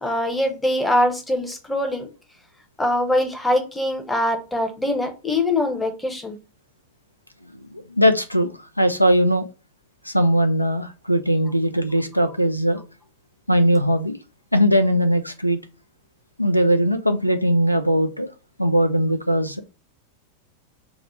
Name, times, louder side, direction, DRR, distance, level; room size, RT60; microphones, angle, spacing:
voice 1, 0.0-2.1 2.8-6.4, left 1 dB, 10° left, 0.8 m, -23 dB
voice 2, 7.7-8.5 8.8-9.5 10.1-12.8 13.5-14.2 14.5-15.6 16.4-18.3 18.6-19.6, equal, 90° left, 0.3 m, -19 dB
3.5 x 2.1 x 4.2 m
figure-of-eight pair, 90°, 0 cm